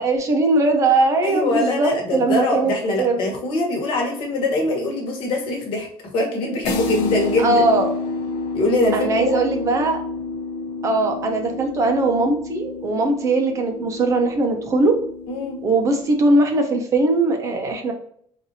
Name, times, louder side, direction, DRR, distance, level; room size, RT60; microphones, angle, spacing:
voice 1, 0.0-3.2 7.4-7.9 8.9-10.0 10.8-14.9 15.6-17.9, right 2 dB, 30° right, 4 dB, 0.6 m, -20 dB
voice 2, 1.2-5.9 6.1-7.6 8.5-9.4 15.3-15.6, left 2 dB, 55° left, 1 dB, 1.3 m, -23 dB
sound 1, 6.6-16.3, left 3 dB, 75° left, 0.7 m, -29 dB
4.0 x 2.6 x 2.7 m, 0.63 s
cardioid pair, 170°, 10 cm